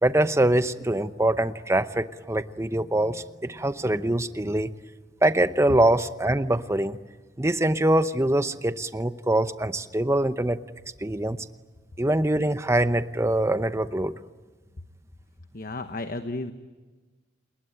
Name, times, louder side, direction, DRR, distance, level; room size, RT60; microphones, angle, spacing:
voice 1, 0.0-4.7 5.2-7.0 7.4-10.6 11.0-11.4 12.0-14.1, right 1 dB, 15° right, 11 dB, 0.8 m, -24 dB
voice 2, 15.5-16.5, left 2 dB, 45° left, 8 dB, 1.1 m, -33 dB
30.0 x 20.0 x 8.8 m, 1.3 s
head